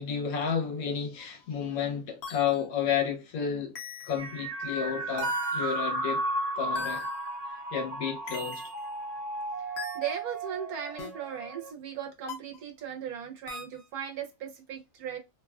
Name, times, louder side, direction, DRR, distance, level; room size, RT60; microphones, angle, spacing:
voice 1, 0.0-3.8 4.0-6.3 6.6-7.1 7.7-8.6, left 7 dB, 75° left, 1.2 m, -31 dB
sound 1, 1.2-1.3 2.2-2.7 3.8-4.4 5.2-5.8 6.8-7.3 8.3-8.9 9.8-10.2 11.0-11.1 12.3-12.6 13.5-13.8, left 4 dB, 55° left, 0.8 m, -39 dB
sound 2, 4.2-11.7, right 2 dB, 65° right, 0.5 m, -34 dB
voice 2, 9.9-15.2, right 8 dB, 85° right, 1.2 m, -37 dB
3.0 x 2.2 x 2.3 m
omnidirectional pair, 1.5 m